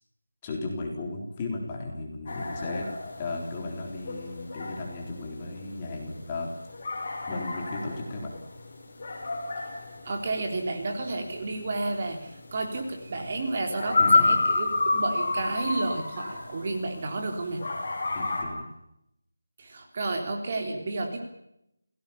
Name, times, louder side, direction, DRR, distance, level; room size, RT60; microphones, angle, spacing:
voice 1, 0.4-2.9 3.2-6.5 7.3-8.4 14.0-14.4 18.1-18.7, left 2 dB, 15° left, 0 dB, 4.0 m, -35 dB
sound 1, 2.3-17.2 17.6-18.4, left 3 dB, 30° left, 6.5 m, -29 dB
voice 2, 10.0-17.6 19.6-21.2, right 2 dB, 30° right, 3 dB, 3.6 m, -31 dB
28.5 x 18.0 x 7.2 m, 0.80 s
figure-of-eight pair, 175°, 0 cm